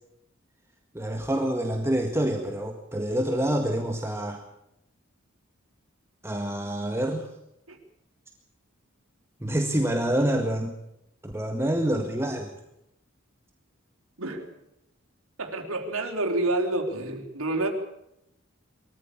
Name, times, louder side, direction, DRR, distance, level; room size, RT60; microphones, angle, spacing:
voice 1, 0.9-4.4 6.2-7.3 9.4-10.7 11.2-12.5, right 1 dB, 15° right, 3 dB, 1.8 m, -27 dB
voice 2, 14.2-14.6 15.4-17.7, right 2 dB, 85° right, 3 dB, 3.9 m, -28 dB
22.5 x 15.0 x 8.6 m, 0.81 s
head